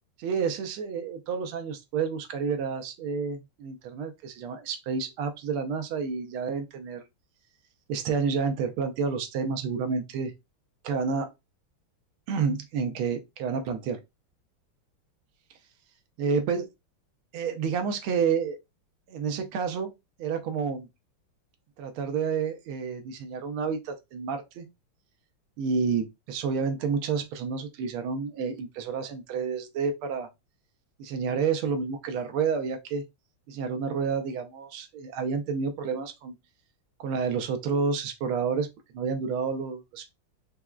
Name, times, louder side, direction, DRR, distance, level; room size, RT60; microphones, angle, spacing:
voice 1, 0.2-7.0 7.9-10.3 10.8-11.3 12.3-14.0 16.2-16.7 17.3-18.6 19.1-19.9 20.2-20.9 21.8-24.7 25.6-30.3 31.0-33.0 33.5-36.3 37.0-38.7 38.9-40.1, right 5 dB, 75° right, 1.4 m, -29 dB
4.5 x 2.1 x 2.3 m
omnidirectional pair, 2.4 m